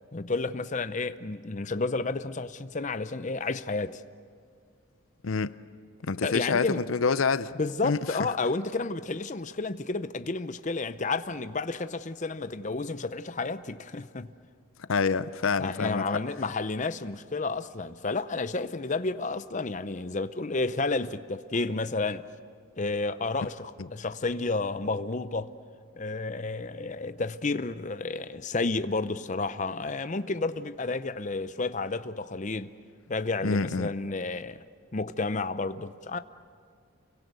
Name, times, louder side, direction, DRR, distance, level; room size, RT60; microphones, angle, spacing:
voice 1, 0.1-4.0 6.2-6.8 7.6-14.3 15.6-22.2 22.8-25.5 26.0-32.7 33.1-34.6 34.9-36.2, left 3 dB, 35° left, 0.7 m, -31 dB
voice 2, 5.2-5.6 6.0-7.5 7.8-8.2 14.9-16.0 33.4-33.9, left 5 dB, 75° left, 0.6 m, -27 dB
29.5 x 23.0 x 8.2 m
head